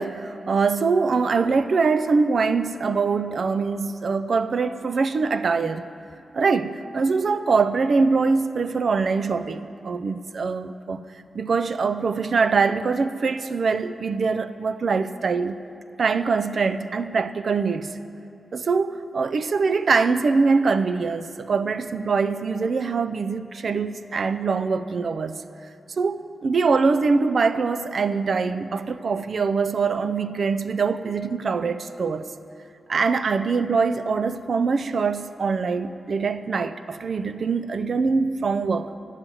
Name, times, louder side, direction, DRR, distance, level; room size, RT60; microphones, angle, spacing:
voice 1, 0.0-5.9 6.3-11.0 11.3-15.6 16.0-18.0 18.5-25.4 26.0-32.3 32.9-38.9, right 4 dB, 70° right, 11 dB, 0.4 m, -23 dB
9.1 x 7.5 x 7.7 m, 2.7 s
cardioid pair, 60°, 0 cm